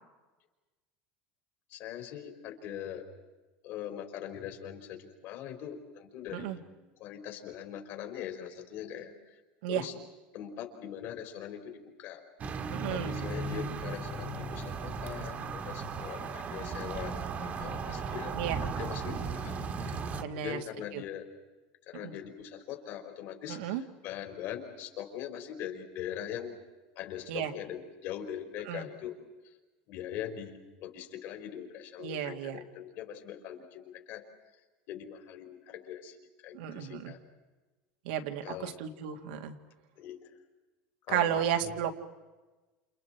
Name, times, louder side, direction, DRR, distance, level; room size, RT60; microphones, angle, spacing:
voice 1, 1.7-3.1 3.6-6.6 7.0-9.4 9.7-9.9 10.3-12.2 12.9-21.3 21.9-26.5 26.9-29.2 29.4-29.5 29.9-34.3 34.9-36.2 36.4-37.2 38.4-38.8 40.0-40.3 41.1-41.8, left 10 dB, 55° left, 3 dB, 4.7 m, -42 dB
sound 1, 12.4-20.2, right 4 dB, 30° right, 1.7 m, -36 dB
voice 2, 12.7-13.1 18.3-18.6 20.1-20.6 20.9-21.0 22.0-22.1 23.5-23.8 27.3-27.5 28.7-28.8 32.0-32.6 36.5-37.1 38.0-39.6 41.1-42.0, right 10 dB, 85° right, 4 dB, 2.1 m, -33 dB
29.5 x 29.5 x 4.6 m, 1.2 s
supercardioid pair, 150°, 5 cm